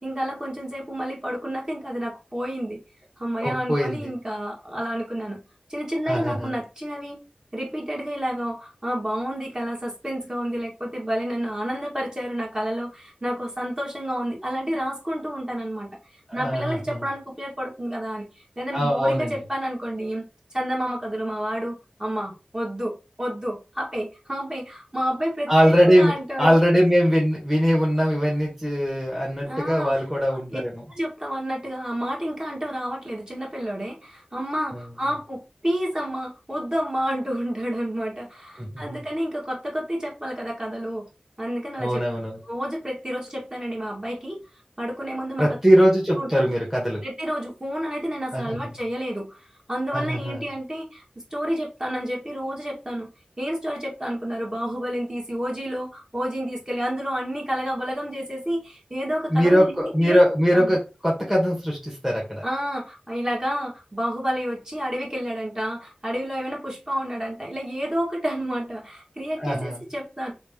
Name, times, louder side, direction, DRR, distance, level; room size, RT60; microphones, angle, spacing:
voice 1, 0.0-2.8 3.2-5.4 5.7-7.2 7.5-20.3 20.5-26.5 29.4-29.9 30.3-30.6 30.9-41.1 41.4-42.0 42.4-44.4 44.8-45.6 46.2-46.5 47.0-51.0 51.3-53.1 53.4-60.2 60.5-60.8 62.4-70.3, equal, 25° right, -2 dB, 1.6 m, -30 dB
voice 2, 3.4-4.0 6.1-6.6 16.3-17.0 18.7-19.4 25.5-30.7 38.6-39.0 41.8-42.4 45.4-47.0 48.3-48.6 49.9-50.4 59.3-62.4 69.4-69.9, equal, 10° right, -3 dB, 1.4 m, -21 dB
3.2 x 2.8 x 3.5 m, 0.29 s
wide cardioid pair, 40°, 3 cm